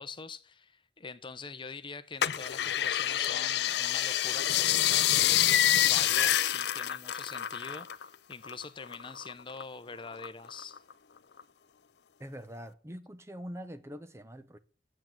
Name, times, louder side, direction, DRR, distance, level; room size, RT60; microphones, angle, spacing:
voice 1, 0.0-10.8, left 4 dB, 30° left, 0.7 m, -44 dB
Carbonated admit Sodaclub, 2.2-8.1 8.3-9.6 10.1-10.9 11.4-11.5, left 12 dB, 70° left, 0.5 m, -27 dB
voice 2, 12.2-14.6, equal, 15° right, 0.6 m, -44 dB
9.4 x 7.8 x 7.5 m
head